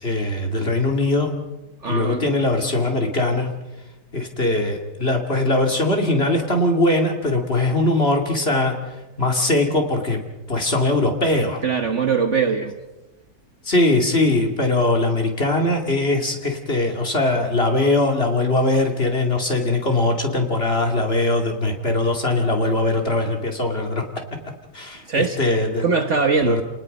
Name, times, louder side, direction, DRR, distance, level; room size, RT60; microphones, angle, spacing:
voice 1, 0.0-1.3 1.8-3.5 4.1-8.7 9.2-10.2 10.5-11.6 13.6-24.0 24.7-25.8 26.4-26.6, left 2 dB, 35° left, 2 dB, 2.6 m, -21 dB
voice 2, 1.8-2.3 11.6-12.7 25.1-25.4 25.8-26.6, right 5 dB, 45° right, 6 dB, 1.4 m, -21 dB
29.0 x 19.0 x 5.4 m, 1.0 s
omnidirectional pair, 1.9 m